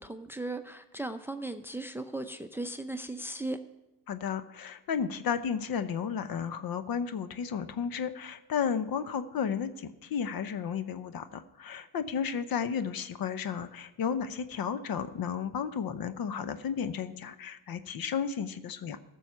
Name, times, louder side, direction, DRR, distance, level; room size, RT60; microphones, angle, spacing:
voice 1, 0.0-3.6, right 2 dB, 5° right, 9 dB, 0.6 m, -37 dB
voice 2, 4.1-19.0, left 7 dB, 55° left, 12 dB, 0.8 m, -33 dB
14.5 x 6.4 x 5.6 m, 1.0 s
supercardioid pair, 70°, 42 cm